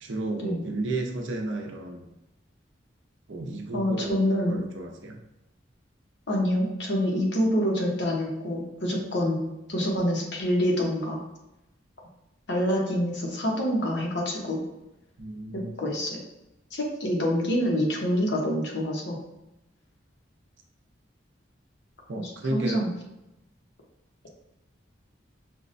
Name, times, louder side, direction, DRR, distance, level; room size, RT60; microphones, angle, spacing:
voice 1, 0.0-2.0 3.3-5.2 15.2-15.7 22.1-22.9, right 2 dB, 80° right, 3 dB, 0.6 m, -33 dB
voice 2, 3.7-4.6 6.3-11.2 12.5-14.6 15.5-16.2 16.7-19.2 22.2-22.9, equal, 65° left, -1 dB, 0.9 m, -26 dB
5.6 x 2.1 x 2.5 m, 0.93 s
head